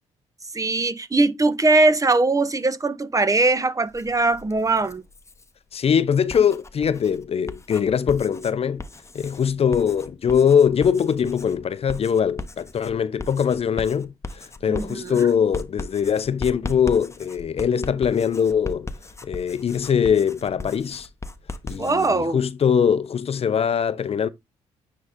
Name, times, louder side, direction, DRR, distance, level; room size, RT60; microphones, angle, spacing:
voice 1, 0.5-5.0 14.7-15.3 21.8-22.4, right 3 dB, 25° right, 1.0 m, -21 dB
Writing, 3.9-5.5 6.1-22.1, left 2 dB, 20° left, 1.0 m, -38 dB
voice 2, 5.7-8.8 9.1-18.9 19.2-21.1 21.6-24.3, left 7 dB, 45° left, 0.7 m, -22 dB
9.6 x 3.9 x 3.6 m
supercardioid pair, 55°, 14 cm